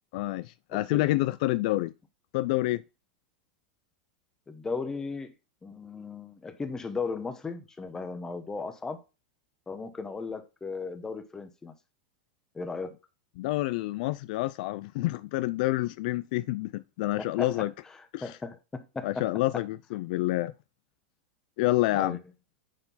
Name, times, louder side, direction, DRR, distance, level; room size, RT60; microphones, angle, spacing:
voice 1, 0.1-1.9 2.3-2.8 13.4-17.7 18.1-18.4 19.0-20.5 21.6-22.2, left 18 dB, 60° left, 0.4 m, -28 dB
voice 2, 0.7-1.0 4.5-5.3 5.6-9.0 9.7-11.7 12.5-13.0 17.2-17.7 18.2-19.2 21.9-22.2, left 4 dB, 10° left, 1.0 m, -36 dB
9.6 x 4.5 x 4.1 m
supercardioid pair, 145°, 5 cm